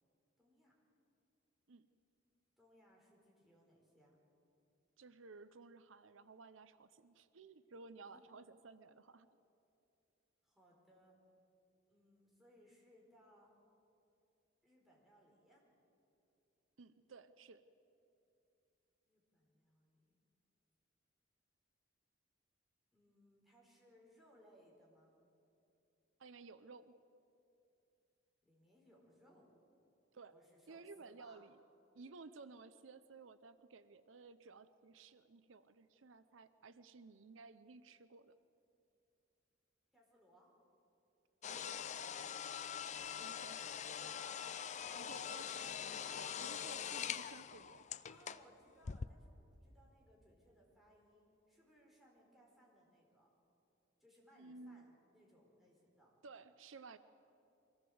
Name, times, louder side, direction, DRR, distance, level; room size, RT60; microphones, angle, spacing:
voice 1, 0.4-0.7 2.6-4.2 8.1-8.3 10.4-11.2 11.9-13.5 14.6-15.6 19.0-20.2 22.9-25.1 28.4-29.5 30.3-31.4 39.9-40.5 44.4-45.3 48.1-53.3 54.0-56.1, equal, ahead, -3 dB, 4.6 m, -67 dB
voice 2, 5.0-9.3 16.8-17.6 26.2-26.9 30.1-30.3 30.7-31.6 31.9-38.3 41.5-41.8 43.2-43.8 45.0-47.9 54.4-54.9 56.2-57.0, right 4 dB, 80° right, 12 dB, 0.7 m, -56 dB
sound 1, 41.4-48.5 48.8-49.1, left 8 dB, 35° left, 0.5 m, -43 dB
23.5 x 16.5 x 7.8 m, 2.7 s
head